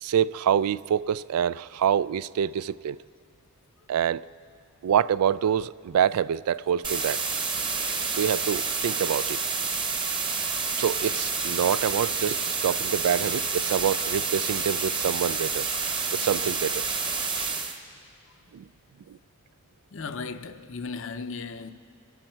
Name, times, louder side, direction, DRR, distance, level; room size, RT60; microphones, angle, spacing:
voice 1, 0.0-3.0 3.9-4.2 4.8-7.2 8.1-9.4 10.8-15.7 16.1-16.8 18.5-18.6 19.1-19.2, right 8 dB, 90° right, 0.3 m, -26 dB
sound 1, 6.8-17.8, right 4 dB, 20° right, 0.9 m, -29 dB
voice 2, 9.6-9.9 12.7-12.8 17.4-17.6 19.9-21.7, left 4 dB, 60° left, 0.6 m, -37 dB
27.5 x 12.0 x 4.5 m
head